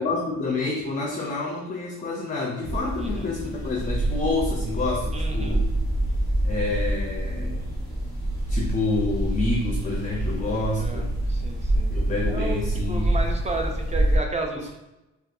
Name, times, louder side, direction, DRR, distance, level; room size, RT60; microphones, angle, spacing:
voice 1, 0.0-5.7 6.4-7.7 8.5-11.1 11.9-13.2 14.6-14.7, left 3 dB, 25° left, -1 dB, 0.6 m, -28 dB
sound 1, 2.6-14.2, right 1 dB, 45° right, 1.5 m, -26 dB
voice 2, 3.0-3.3 5.1-5.6 10.8-11.9 12.3-14.8, right 2 dB, 20° right, 3 dB, 0.5 m, -33 dB
3.5 x 2.4 x 2.6 m, 0.98 s
cardioid pair, 90°, 30 cm